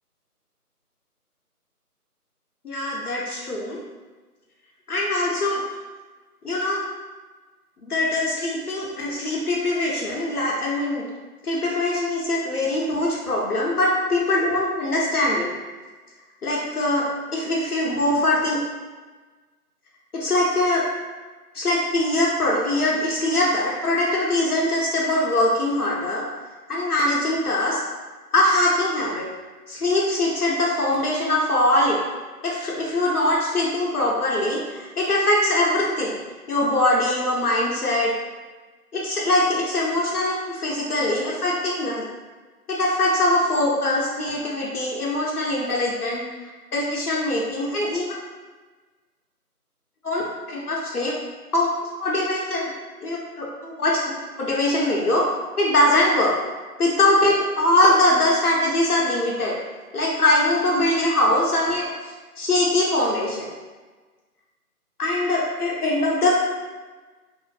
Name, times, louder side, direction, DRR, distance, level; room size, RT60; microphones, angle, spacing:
voice 1, 2.6-3.8 4.9-5.6 6.4-6.8 7.9-11.0 11.4-15.5 16.4-18.6 20.1-20.8 21.5-26.2 26.7-27.8 28.3-29.3 29.7-32.0 32.4-36.2 36.5-38.1 38.9-42.0 42.7-46.3 46.7-48.0 50.0-51.1 51.5-51.7 52.0-52.7 53.0-55.3 55.6-56.3 56.8-59.6 59.9-61.9 62.4-63.5 65.0-66.4, left 1 dB, 70° left, -4 dB, 0.6 m, -22 dB
2.5 x 2.1 x 2.4 m, 1.3 s
figure-of-eight pair, 160°, 46 cm